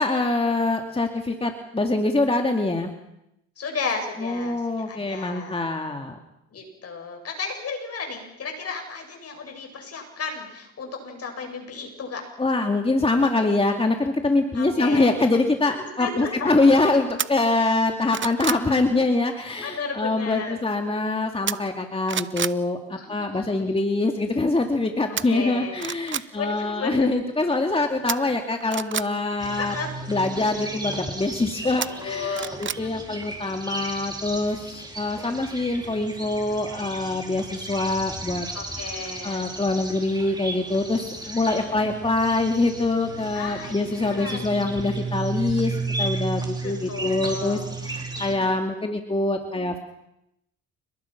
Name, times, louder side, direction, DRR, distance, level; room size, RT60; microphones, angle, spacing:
voice 1, 0.0-2.9 4.2-6.2 12.4-29.7 30.1-38.5 39.2-49.8, left 2 dB, 20° left, 4 dB, 2.4 m, -24 dB
voice 2, 3.6-5.6 6.5-12.2 14.5-15.2 15.7-16.7 19.6-20.6 22.9-23.7 25.3-25.8 26.3-27.1 29.5-29.9 31.8-33.1 38.5-39.5 41.2-41.9 43.3-44.4 46.6-47.7 48.1-48.5, left 4 dB, 55° left, 4 dB, 7.8 m, -34 dB
sound 1, 17.2-17.3 17.8-18.7 21.5-21.8 22.1-22.6 25.2-25.3 25.8-26.3 28.1-29.1 31.8-32.8 33.2-33.3, right 8 dB, 40° right, 0.9 m, -29 dB
sound 2, 29.4-48.3, right 3 dB, 15° right, 4.6 m, -34 dB
29.5 x 20.0 x 6.0 m, 0.83 s
cardioid pair, 90°, 30 cm